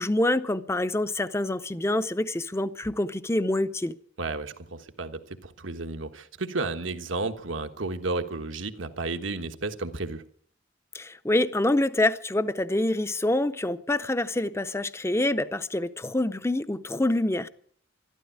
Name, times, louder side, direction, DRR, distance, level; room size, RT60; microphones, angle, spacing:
voice 1, 0.0-3.9 10.9-17.5, left 1 dB, 15° left, 0.5 m, -26 dB
voice 2, 4.2-10.2, right 3 dB, 90° right, 1.3 m, -32 dB
13.0 x 12.5 x 8.8 m
head